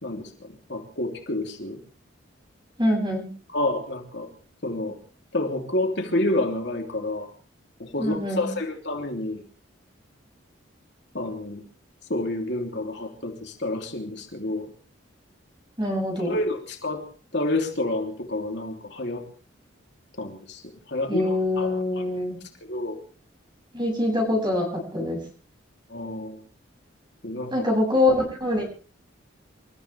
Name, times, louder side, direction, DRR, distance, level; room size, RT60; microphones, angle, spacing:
voice 1, 0.0-1.8 3.5-4.3 4.6-5.0 5.3-7.3 7.8-9.4 11.1-11.6 12.1-14.7 16.2-17.0 17.3-19.2 20.2-20.6 20.9-22.0 22.7-23.0 25.9-26.4 27.2-27.5, left 1 dB, 60° left, 2 dB, 3.2 m, -29 dB
voice 2, 2.8-3.3 8.0-8.5 15.8-16.3 21.1-22.4 23.7-25.2 27.5-28.6, left 1 dB, 25° right, 1 dB, 7.3 m, -24 dB
28.5 x 14.5 x 3.5 m, 0.38 s
head